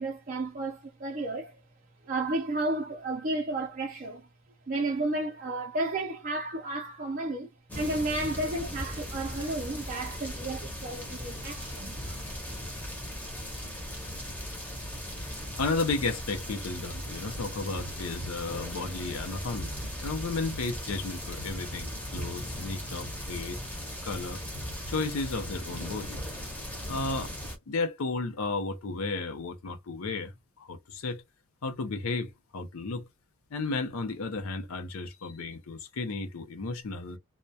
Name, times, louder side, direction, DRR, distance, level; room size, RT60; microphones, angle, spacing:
voice 1, 0.0-1.6 2.0-4.3 4.7-7.5 7.7-12.2, right 2 dB, 40° right, 0.4 m, -32 dB
sound 1, 7.7-27.6, equal, 5° left, 0.6 m, -38 dB
voice 2, 15.6-19.7 20.0-23.6 24.0-24.4 24.9-26.2 26.9-27.3 27.7-30.3 30.6-31.2 31.6-33.1 33.5-37.2, left 3 dB, 75° left, 0.5 m, -33 dB
sound 2, 17.3-19.3 19.6-24.0 24.5-26.5, equal, 60° left, 0.9 m, -46 dB
2.2 x 2.1 x 2.6 m
head